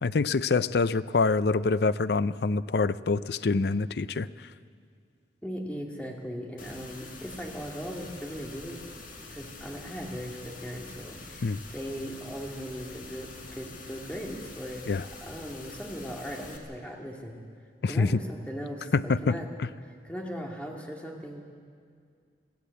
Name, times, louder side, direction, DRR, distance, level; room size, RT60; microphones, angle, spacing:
voice 1, 0.0-4.5 11.4-11.6 14.9-15.0 17.8-18.2 18.9-19.7, left 4 dB, 65° left, 16 dB, 0.5 m, -26 dB
voice 2, 5.4-8.8 9.2-14.8 15.2-17.4 17.9-19.5 20.0-21.4, equal, 5° left, -1 dB, 2.1 m, -38 dB
sound 1, 6.6-16.6, left 3 dB, 45° left, 2.1 m, -45 dB
22.0 x 14.5 x 8.2 m, 2.2 s
head